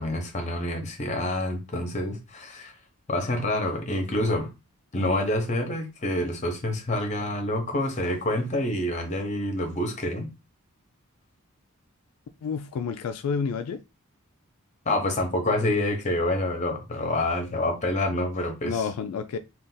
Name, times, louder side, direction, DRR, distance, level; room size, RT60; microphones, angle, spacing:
voice 1, 0.0-2.7 3.1-4.5 4.9-10.3 14.9-18.8, left 1 dB, 30° left, 0.8 m, -27 dB
voice 2, 12.4-13.8 18.6-19.4, left 6 dB, 80° left, 0.3 m, -29 dB
2.5 x 2.4 x 3.8 m
head